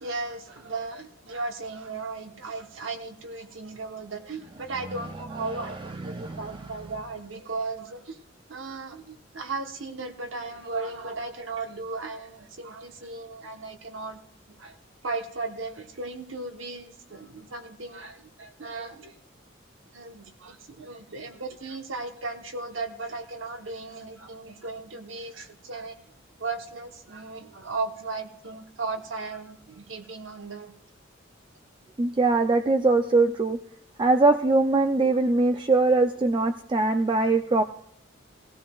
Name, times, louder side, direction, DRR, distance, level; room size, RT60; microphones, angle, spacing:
voice 1, 0.0-8.2 8.5-14.2 14.6-14.8 15.0-19.1 19.9-25.9 26.4-30.7, right 3 dB, 75° right, 5 dB, 1.1 m, -36 dB
voice 2, 6.0-6.4 32.0-33.6 34.0-37.6, right 3 dB, 25° right, 6 dB, 0.4 m, -22 dB
18.0 x 16.0 x 2.3 m, 0.72 s
head